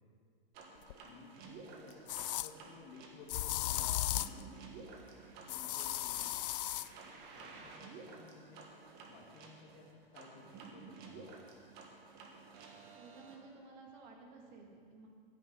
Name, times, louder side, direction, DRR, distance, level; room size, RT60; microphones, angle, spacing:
sound 1, 0.5-13.3, right 4 dB, 35° right, 1.6 m, -53 dB
sound 2, 0.9-1.0 2.1-2.5 3.3-4.4 5.5-6.9, left 14 dB, 65° left, 0.4 m, -36 dB
voice 1, 1.0-4.6 5.4-6.4 6.7-6.8 7.4-8.7 9.0-11.6, left 4 dB, 35° left, 1 dB, 1.7 m, -57 dB
voice 2, 12.9-15.1, right 3 dB, 50° right, 1 dB, 2.3 m, -55 dB
16.0 x 9.6 x 4.0 m, 2.1 s
hypercardioid pair, 135°, 29 cm